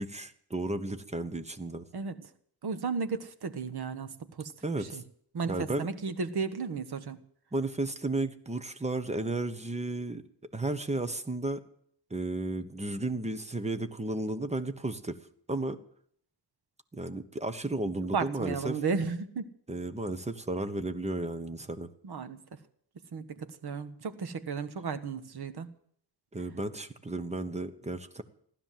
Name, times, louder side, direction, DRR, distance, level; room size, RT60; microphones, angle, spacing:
voice 1, 0.0-1.8 4.6-5.0 5.5-5.9 7.5-10.2 10.5-11.6 12.1-15.2 15.5-15.8 16.9-18.8 19.7-21.9 26.3-28.2, right 2 dB, 15° right, 11 dB, 1.1 m, -33 dB
voice 2, 1.9-2.3 2.6-4.5 4.8-5.0 5.3-7.2 18.1-19.5 22.0-22.6 23.1-25.7, right 5 dB, 65° right, 10 dB, 1.5 m, -34 dB
16.0 x 12.0 x 7.6 m, 0.65 s
wide cardioid pair, 130°, 42 cm